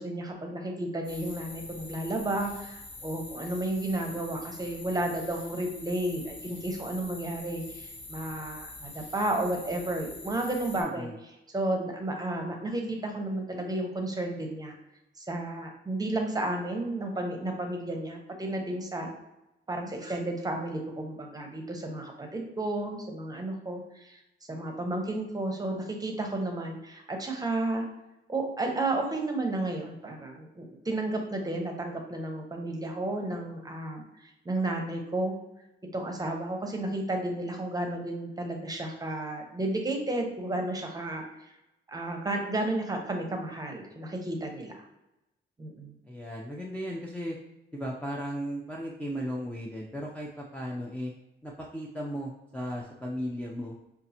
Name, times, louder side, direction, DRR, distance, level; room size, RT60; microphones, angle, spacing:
voice 1, 0.0-11.1 11.5-14.8 15.2-19.1 19.7-24.2 24.5-27.9 28.3-35.4 35.9-41.2 41.9-44.9 45.6-46.0, right 2 dB, 20° right, 2 dB, 0.7 m, -32 dB
sound 1, 1.0-10.8, left 2 dB, 65° left, 1.0 m, -45 dB
voice 2, 10.8-11.2 46.1-47.4 47.7-51.1 51.4-53.8, equal, 5° left, -4 dB, 0.4 m, -36 dB
5.2 x 2.4 x 2.8 m, 0.92 s
cardioid pair, 115°, 20 cm